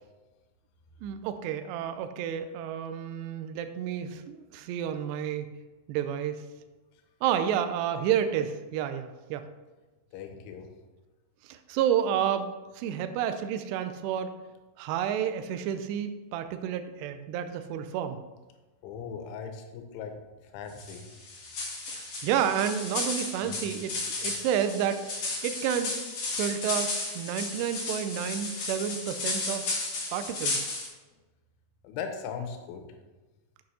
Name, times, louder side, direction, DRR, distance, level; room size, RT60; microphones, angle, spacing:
voice 1, 1.0-5.5 5.9-6.4 7.2-9.5 11.4-12.5 12.8-14.3 14.8-18.2 21.9-25.2 25.4-26.0 26.3-29.7 30.1-30.8, right 9 dB, 85° right, 9 dB, 2.5 m, -30 dB
voice 2, 10.1-10.7 18.8-20.2 20.5-21.1 31.8-32.9, left 6 dB, 90° left, 5 dB, 3.4 m, -38 dB
sound 1, 20.8-30.9, left 3 dB, 55° left, 1.8 m, -34 dB
7.7 x 6.4 x 4.2 m, 1.2 s
omnidirectional pair, 5.4 m